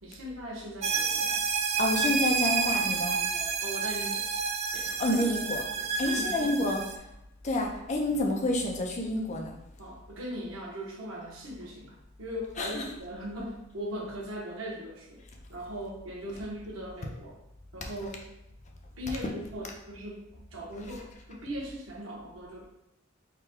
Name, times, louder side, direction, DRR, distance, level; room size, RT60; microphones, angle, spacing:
voice 1, 0.0-1.5 3.1-4.3 4.7-5.5 5.8-6.8 9.8-15.2 15.5-17.4 17.7-18.2 19.0-22.6, equal, 90° right, -2 dB, 1.0 m, -39 dB
sound 1, 0.8-7.0, right 5 dB, 30° right, 0.3 m, -29 dB
voice 2, 1.8-3.2 5.0-5.6 6.0-6.8 7.4-9.6 12.6-12.8, left 1 dB, 35° left, 2 dB, 0.6 m, -28 dB
3.7 x 2.2 x 4.4 m, 0.85 s
head